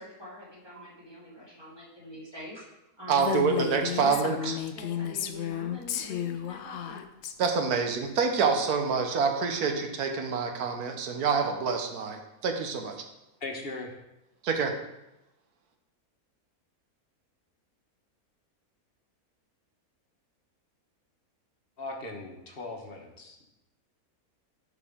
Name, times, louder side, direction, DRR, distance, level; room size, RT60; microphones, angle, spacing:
voice 1, 0.0-2.6 3.0-7.0, equal, 15° right, -8 dB, 2.8 m, -45 dB
voice 2, 3.1-4.5 7.4-13.0 14.4-14.7, right 5 dB, 85° right, 4 dB, 1.5 m, -27 dB
Female speech woman speaking, 3.2-7.3, left 10 dB, 65° left, 0.7 m, -33 dB
voice 3, 13.4-13.9 21.8-23.5, left 2 dB, 45° left, 2 dB, 1.2 m, -39 dB
11.0 x 4.8 x 3.6 m, 0.92 s
omnidirectional pair, 1.5 m